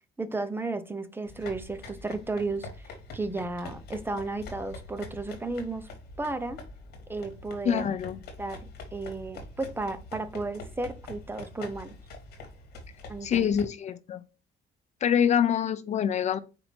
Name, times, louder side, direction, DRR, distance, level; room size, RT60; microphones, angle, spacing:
voice 1, 0.0-5.9 6.2-6.6 7.1-7.9 8.4-11.9 13.1-13.5, right 3 dB, 15° right, 0.5 m, -34 dB
sound 1, 1.3-13.7, left 2 dB, 70° left, 1.3 m, -45 dB
voice 2, 7.7-8.2 13.2-14.2 15.0-16.4, left 8 dB, 45° left, 0.4 m, -25 dB
4.5 x 2.6 x 4.3 m
cardioid pair, 110°, 17 cm